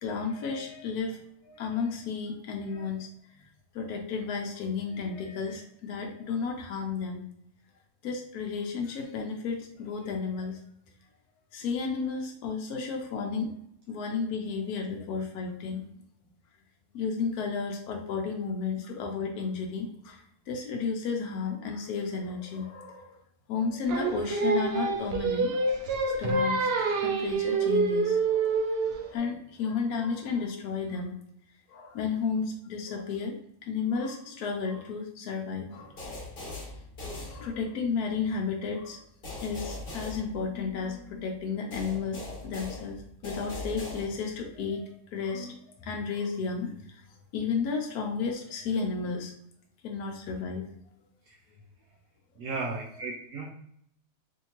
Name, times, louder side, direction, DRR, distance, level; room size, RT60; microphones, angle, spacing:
voice 1, 0.0-3.1 3.7-7.2 8.0-10.6 11.5-13.6 13.9-16.0 16.9-23.2 23.5-26.7 27.0-28.6 29.0-31.2 31.7-36.0 37.2-39.0 39.4-47.0 47.3-49.3 49.8-50.7, left 5 dB, 80° left, 1 dB, 1.1 m, -33 dB
Singing, 23.9-29.1, right 4 dB, 85° right, 0.5 m, -27 dB
sound 1, 36.0-37.9 39.2-41.0 41.7-44.5, left 2 dB, 40° left, 1.1 m, -40 dB
voice 2, 52.4-53.5, right 3 dB, 70° right, 0 dB, 0.9 m, -35 dB
3.5 x 2.7 x 2.9 m, 0.70 s
omnidirectional pair, 1.6 m